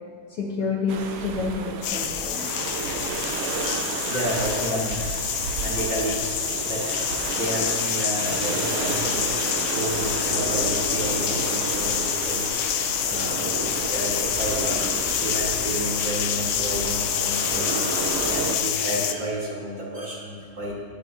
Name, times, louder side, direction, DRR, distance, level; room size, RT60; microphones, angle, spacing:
voice 1, 0.3-2.5 4.5-4.8, left 4 dB, 60° left, -3 dB, 1.7 m, -29 dB
sound 1, 0.9-18.6, right 5 dB, 75° right, 1.4 m, -32 dB
sound 2, 1.8-19.1, left 10 dB, 85° left, 1.3 m, -27 dB
sound 3, 3.3-12.5, equal, 10° right, 0.9 m, -36 dB
voice 2, 3.6-5.0 5.6-6.4 6.6-17.9 18.3-20.7, right 1 dB, 45° right, -5 dB, 2.0 m, -31 dB
18.0 x 9.7 x 2.8 m, 2.1 s
omnidirectional pair, 3.5 m